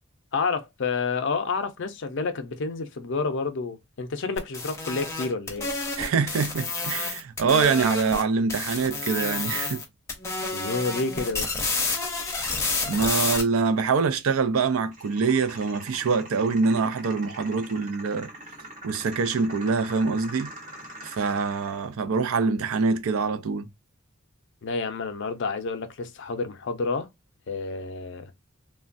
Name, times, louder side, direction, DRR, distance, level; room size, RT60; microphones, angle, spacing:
voice 1, 0.3-5.7 10.5-11.5 24.6-27.1 27.5-28.3, left 4 dB, 60° left, 0.5 m, -29 dB
sound 1, 4.4-8.2 8.5-9.8 10.1-13.4, left 3 dB, 15° left, 0.6 m, -29 dB
voice 2, 6.0-9.8 12.9-18.3 18.8-20.5 21.0-23.7, right 4 dB, 75° right, 0.4 m, -25 dB
sound 2, 14.9-21.9, right 1 dB, 35° right, 0.8 m, -43 dB
3.2 x 2.2 x 2.5 m
head